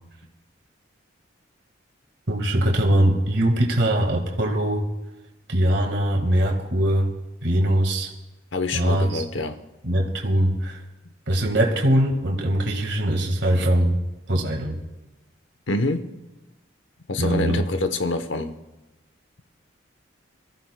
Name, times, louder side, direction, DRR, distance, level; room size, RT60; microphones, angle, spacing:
voice 1, 2.3-4.8 5.5-7.1 7.4-8.1 8.7-9.2 9.8-10.8 11.3-14.0 14.3-14.8 17.2-17.6, right 1 dB, 65° right, 1.8 m, -21 dB
voice 2, 8.5-9.6 15.7-16.1 17.1-18.5, left 2 dB, 75° left, 0.9 m, -26 dB
24.0 x 14.0 x 2.2 m
head